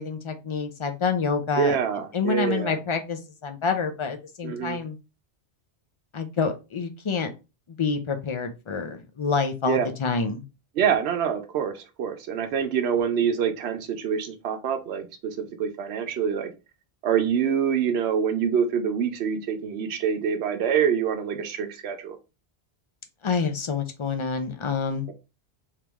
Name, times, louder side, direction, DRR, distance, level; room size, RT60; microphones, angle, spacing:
voice 1, 0.0-1.8 2.1-5.0 6.1-7.3 7.8-10.4 23.2-25.1, left 5 dB, 50° left, 6 dB, 0.4 m, -27 dB
voice 2, 1.6-2.7 4.4-4.8 9.7-9.9 10.8-16.5 17.0-22.2, right 7 dB, 85° right, 7 dB, 0.9 m, -26 dB
3.0 x 2.8 x 3.4 m, 0.28 s
omnidirectional pair, 1.1 m